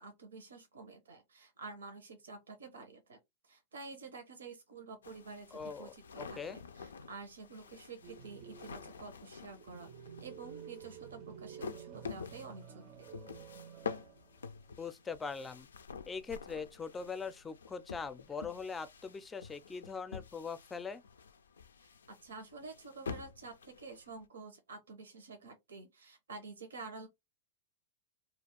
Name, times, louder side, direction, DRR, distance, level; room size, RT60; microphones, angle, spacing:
voice 1, 0.0-3.2 3.5-13.1 21.8-21.9 22.2-27.1, right 4 dB, 85° right, 0.7 m, -49 dB
sound 1, 5.0-24.2, left 6 dB, 85° left, 0.3 m, -48 dB
voice 2, 5.5-6.6 14.8-15.7 16.1-21.0, left 5 dB, 15° left, 0.4 m, -42 dB
sound 2, 8.0-14.6 14.8-14.9 16.6-17.3 18.4-19.1, right 8 dB, 45° right, 0.4 m, -52 dB
2.3 x 2.3 x 3.5 m
hypercardioid pair, 110°, 0 cm